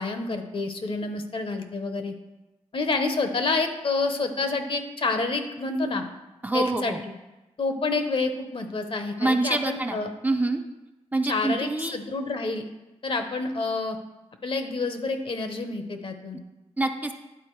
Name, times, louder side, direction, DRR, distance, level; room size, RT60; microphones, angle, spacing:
voice 1, 0.0-2.1 2.7-6.0 6.5-6.9 7.6-10.1 11.2-12.6 13.0-14.0 14.4-16.4, left 3 dB, 50° left, 7 dB, 0.8 m, -28 dB
voice 2, 6.4-7.0 9.2-10.6 11.1-12.0 16.8-17.1, right 2 dB, 15° right, 5 dB, 0.5 m, -26 dB
10.5 x 3.9 x 4.6 m, 1.0 s
cardioid pair, 85°, 12 cm